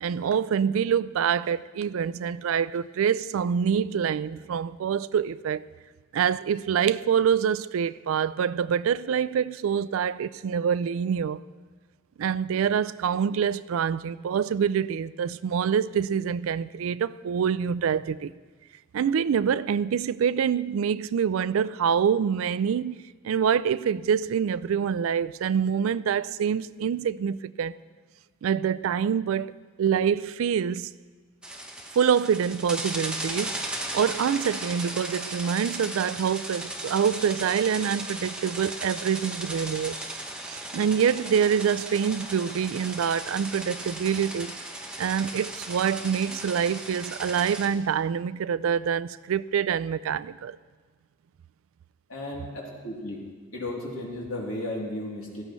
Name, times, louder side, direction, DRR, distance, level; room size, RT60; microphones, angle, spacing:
voice 1, 0.0-5.6 6.1-11.4 12.2-18.3 18.9-27.7 28.4-30.9 31.9-33.6 33.9-40.0 40.4-44.5 45.0-50.6, right 7 dB, 80° right, 0.3 m, -26 dB
sound 1, 31.4-47.7, right 1 dB, 5° right, 0.9 m, -36 dB
voice 2, 52.1-53.2 53.5-55.4, left 1 dB, 80° left, 3.0 m, -34 dB
17.0 x 14.0 x 3.1 m
head